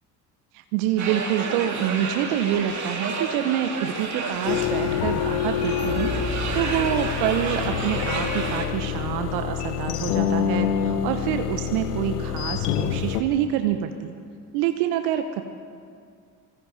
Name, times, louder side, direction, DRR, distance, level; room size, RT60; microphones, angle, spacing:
voice 1, 0.5-14.1 14.5-15.4, right 10 dB, 65° right, 7 dB, 0.9 m, -27 dB
sound 1, 1.0-8.7, right 4 dB, 35° right, 2.5 m, -31 dB
sound 2, 3.9-12.6, left 9 dB, 45° left, 1.2 m, -41 dB
sound 3, 4.5-13.2, left 8 dB, 75° left, 1.0 m, -26 dB
24.5 x 21.5 x 2.7 m, 2.2 s
hypercardioid pair, 60°, 47 cm